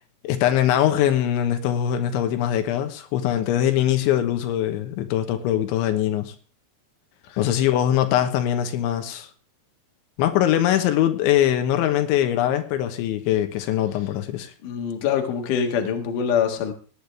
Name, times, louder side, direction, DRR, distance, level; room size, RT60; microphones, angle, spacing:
voice 1, 0.2-6.3 7.4-9.3 10.2-14.5, left 11 dB, 90° left, 3.6 m, -22 dB
voice 2, 14.6-16.7, left 7 dB, 55° left, 2.9 m, -24 dB
19.0 x 10.0 x 3.4 m
omnidirectional pair, 5.2 m